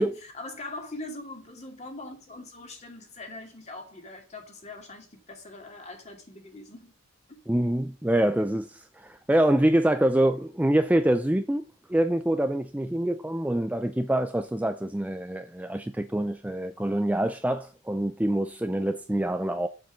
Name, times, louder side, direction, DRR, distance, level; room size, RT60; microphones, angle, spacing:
voice 1, 0.0-7.0 7.3-7.4, left 2 dB, 35° left, 2.4 m, -42 dB
voice 2, 7.5-11.6 11.9-19.7, right 1 dB, 5° right, 0.4 m, -25 dB
7.4 x 7.2 x 6.1 m
head